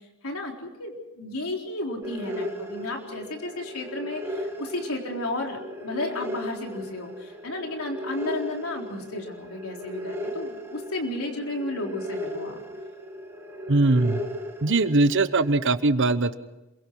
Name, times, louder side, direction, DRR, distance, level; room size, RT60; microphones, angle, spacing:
voice 1, 0.2-12.6, left 2 dB, 70° left, 1 dB, 4.0 m, -33 dB
sound 1, 2.0-15.6, equal, 10° right, 2.9 m, -36 dB
voice 2, 13.7-14.2 14.6-16.4, right 2 dB, 55° right, 12 dB, 1.0 m, -21 dB
27.0 x 23.0 x 4.7 m, 0.98 s
head